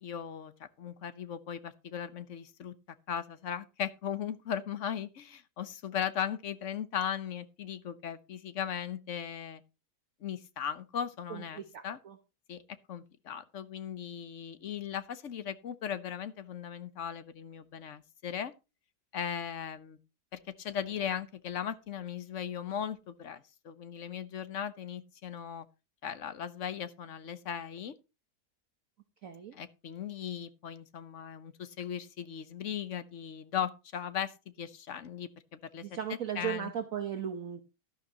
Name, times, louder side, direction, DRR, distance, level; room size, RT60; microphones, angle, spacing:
voice 1, 0.0-2.8 3.1-9.6 10.2-12.0 12.5-12.6 12.9-18.5 19.1-20.0 20.3-25.7 26.0-28.0 29.5-35.8 36.1-36.7, left 8 dB, 55° left, 1.0 m, -38 dB
voice 2, 11.3-12.1 29.2-29.6 35.8-37.6, right 9 dB, 55° right, 1.3 m, -37 dB
12.0 x 11.5 x 2.9 m
omnidirectional pair, 1.8 m